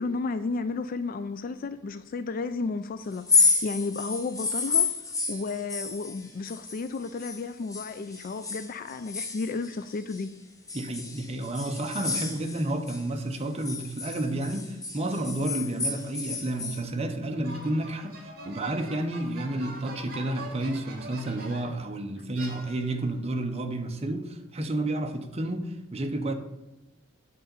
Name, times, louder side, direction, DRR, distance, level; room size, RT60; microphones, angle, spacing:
voice 1, 0.0-4.9 5.3-10.3, left 3 dB, 45° left, 11 dB, 0.3 m, -33 dB
sound 1, 3.1-7.4 7.7-10.2 10.7-13.0 13.3-16.8, left 4 dB, 15° left, 1.1 m, -30 dB
voice 2, 10.7-26.3, right 1 dB, 30° right, 5 dB, 0.8 m, -31 dB
sound 2, 17.4-21.8 22.3-23.1, right 2 dB, 50° right, 1.8 m, -43 dB
8.5 x 3.9 x 6.8 m, 1.0 s
head